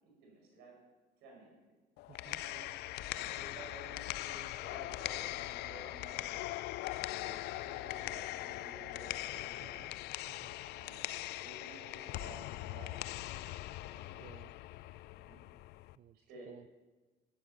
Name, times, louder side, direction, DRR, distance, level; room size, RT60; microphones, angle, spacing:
voice 1, 0.2-0.8 1.2-1.5 2.1-2.7 3.1-6.3 7.0-9.8 10.7-11.1 11.4-13.5 13.9-14.2 15.1-15.4 16.3-16.5, right 2 dB, 90° right, -1 dB, 5.2 m, -54 dB
sound 1, 2.0-16.0, left 16 dB, 75° left, 0.4 m, -41 dB
voice 2, 2.1-2.4 9.6-9.9 10.2-10.6 14.2-14.5 16.0-16.2 16.5-16.7, right 10 dB, 45° right, 11 dB, 0.5 m, -56 dB
sound 2, 2.8-12.8, left 3 dB, 60° left, 4.5 m, -70 dB
13.0 x 8.9 x 6.5 m, 1.2 s
cardioid pair, 110°, 17 cm